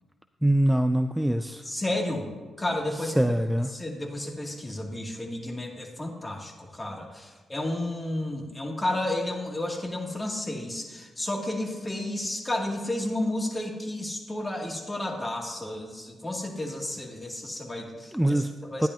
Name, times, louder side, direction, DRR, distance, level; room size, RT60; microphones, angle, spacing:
voice 1, 0.4-1.6 3.0-3.7 18.1-18.5 18.8-18.9, right 1 dB, 5° right, 9 dB, 0.4 m, -23 dB
voice 2, 1.6-2.3 2.6-3.2 3.7-18.9, left 1 dB, 25° left, -1 dB, 2.4 m, -32 dB
12.5 x 9.9 x 2.8 m, 1.3 s
hypercardioid pair, 40°, 0 cm